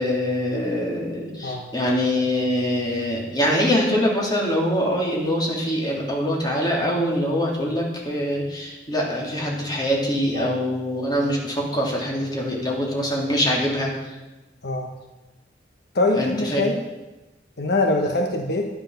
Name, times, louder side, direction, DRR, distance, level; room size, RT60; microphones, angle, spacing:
voice 1, 0.0-14.1 16.1-16.6, equal, 25° left, -3 dB, 3.2 m, -24 dB
voice 2, 15.9-16.8 17.6-18.7, left 2 dB, 65° left, 2 dB, 1.2 m, -23 dB
11.5 x 10.5 x 6.5 m, 1.1 s
head